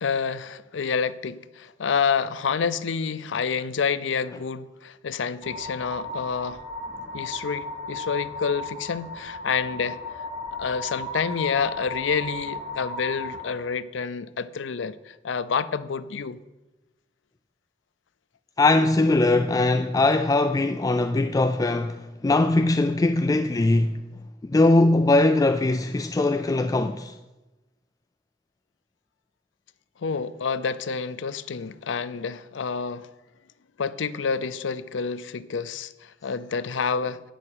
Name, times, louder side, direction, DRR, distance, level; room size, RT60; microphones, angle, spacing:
voice 1, 0.0-6.6 7.1-10.0 10.6-16.4 30.0-33.1 33.8-37.3, left 6 dB, 80° left, 0.5 m, -28 dB
sound 1, 5.4-13.5, left 2 dB, 30° right, 3.6 m, -35 dB
voice 2, 18.6-24.0 24.4-27.1, left 2 dB, 20° left, 0.3 m, -21 dB
8.7 x 6.4 x 8.5 m
head